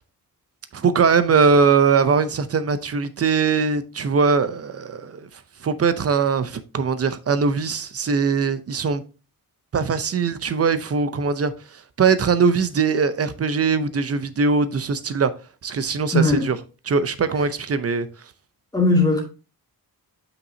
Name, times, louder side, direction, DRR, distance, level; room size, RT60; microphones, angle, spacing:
voice 1, 0.7-5.3 5.6-9.0 9.7-15.3 15.6-16.6 16.9-18.1, right 5 dB, 40° right, 0.6 m, -21 dB
voice 2, 16.1-16.5 18.7-19.2, left 2 dB, 10° left, 2.2 m, -18 dB
7.8 x 5.9 x 2.7 m
wide cardioid pair, 175°, 38 cm